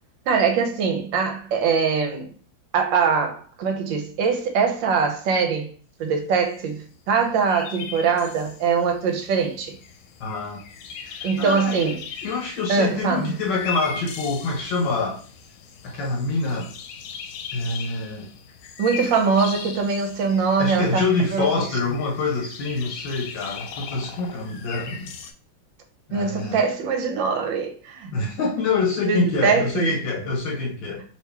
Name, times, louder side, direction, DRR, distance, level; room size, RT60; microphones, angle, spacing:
voice 1, 0.3-2.3 2.7-5.7 6.0-9.8 11.2-12.0 12.7-13.3 18.8-21.0 21.3-21.5 26.1-28.1 29.1-30.0, right 5 dB, 70° right, 1.3 m, -22 dB
sound 1, 6.5-6.6 6.8-6.9 7.1-25.3, left 6 dB, 85° left, 1.4 m, -39 dB
voice 2, 10.2-10.6 11.0-11.8 12.2-15.2 15.8-16.7 17.5-18.3 20.6-25.1 26.1-26.6 28.1-31.0, left 3 dB, 70° left, 1.5 m, -26 dB
3.2 x 2.9 x 3.4 m
omnidirectional pair, 2.2 m